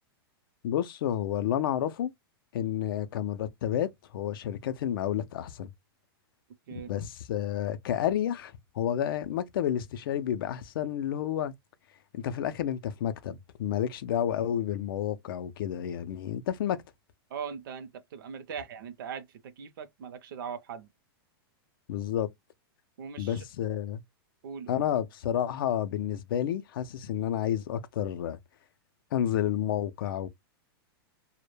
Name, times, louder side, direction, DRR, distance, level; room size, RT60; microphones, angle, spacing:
voice 1, 0.6-2.1 2.5-5.7 6.7-11.5 12.1-16.8 21.9-22.3 23.2-24.0 24.7-28.4 29.1-30.3, left 10 dB, 60° left, 0.4 m, -30 dB
voice 2, 17.3-20.9 23.0-23.4 24.4-24.8, right 7 dB, 60° right, 0.5 m, -40 dB
2.1 x 2.1 x 3.0 m
supercardioid pair, 160°, 13 cm